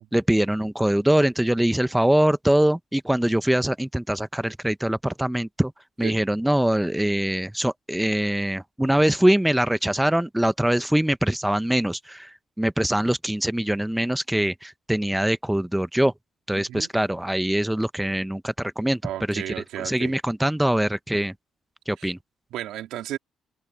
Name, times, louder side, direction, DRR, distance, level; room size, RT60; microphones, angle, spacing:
voice 1, 0.0-5.7 6.0-16.1 16.5-19.0 19.3-19.4 19.8-21.3 21.9-22.2, right 1 dB, 5° right, 0.7 m, -23 dB
voice 2, 16.5-16.9 19.0-20.1 22.0-22.1 22.5-23.2, right 13 dB, 90° right, 3.2 m, -33 dB
cardioid pair, 90°, 0 cm